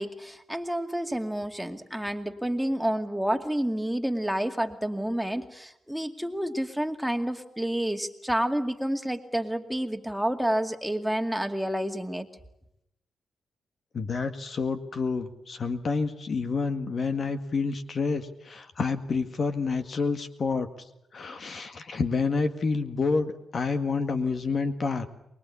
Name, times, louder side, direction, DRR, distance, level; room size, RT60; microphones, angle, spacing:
voice 1, 0.0-12.3, right 1 dB, 5° right, 6 dB, 2.3 m, -29 dB
voice 2, 13.9-20.7 21.1-25.1, left 4 dB, 55° left, 8 dB, 1.8 m, -28 dB
24.0 x 21.5 x 8.5 m, 0.81 s
supercardioid pair, 55°, 0 cm